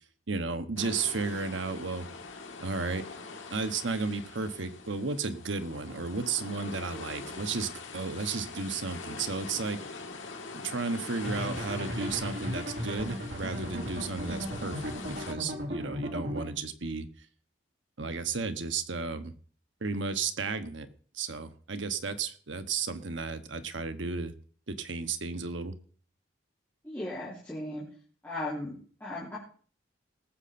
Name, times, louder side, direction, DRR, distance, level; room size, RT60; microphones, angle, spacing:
voice 1, 0.3-2.1 2.6-3.0 3.5-9.8 10.5-17.1 18.0-19.3 19.8-20.9 21.1-24.3 24.7-25.7, right 4 dB, 85° right, 9 dB, 1.1 m, -33 dB
sound 1, 0.8-15.3, left 4 dB, 90° left, 1.7 m, -43 dB
sound 2, 11.2-16.4, equal, 60° right, 3.0 m, -36 dB
voice 2, 26.8-27.8 28.2-29.4, left 1 dB, 10° left, -9 dB, 3.0 m, -37 dB
19.0 x 7.6 x 4.3 m, 0.43 s
head